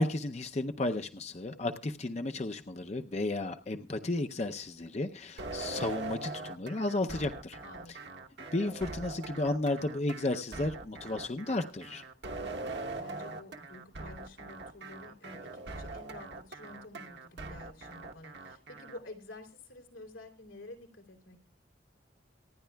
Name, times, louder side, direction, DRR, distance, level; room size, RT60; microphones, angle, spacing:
voice 1, 0.0-7.6 8.5-12.0, left 2 dB, 35° left, 7 dB, 0.6 m, -33 dB
sound 1, 5.4-19.0, right 3 dB, 60° right, 1.1 m, -42 dB
voice 2, 7.6-7.9 12.4-21.5, left 2 dB, 90° left, 3 dB, 3.2 m, -50 dB
26.0 x 10.0 x 2.3 m, 0.34 s
head